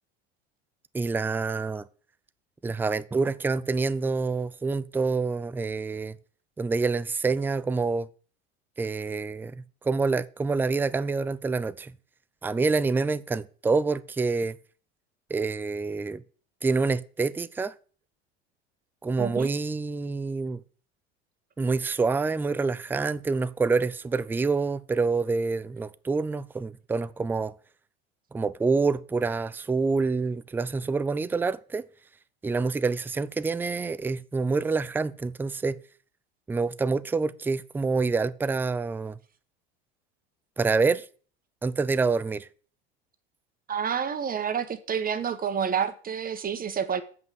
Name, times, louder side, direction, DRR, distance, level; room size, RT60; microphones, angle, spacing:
voice 1, 0.9-1.8 2.6-6.2 6.6-8.1 8.8-11.9 12.4-14.6 15.3-16.2 16.6-17.7 19.0-20.6 21.6-27.5 28.3-31.9 32.4-35.8 36.5-39.2 40.6-41.1 41.6-42.5, right 4 dB, 5° right, 0.4 m, -27 dB
voice 2, 19.2-19.5 43.7-47.0, right 7 dB, 30° right, 1.3 m, -29 dB
7.6 x 5.8 x 7.7 m
hypercardioid pair, 85°, 31 cm